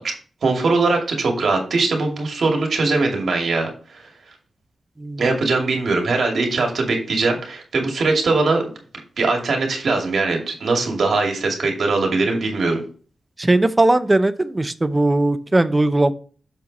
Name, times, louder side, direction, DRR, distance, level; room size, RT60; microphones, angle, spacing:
voice 1, 0.4-3.7 5.2-8.6 9.2-12.8, right 3 dB, 75° right, 2 dB, 2.4 m, -21 dB
voice 2, 13.4-16.1, right 2 dB, 25° right, 13 dB, 0.7 m, -18 dB
7.3 x 4.6 x 4.1 m, 0.40 s
cardioid pair, 65°, 0 cm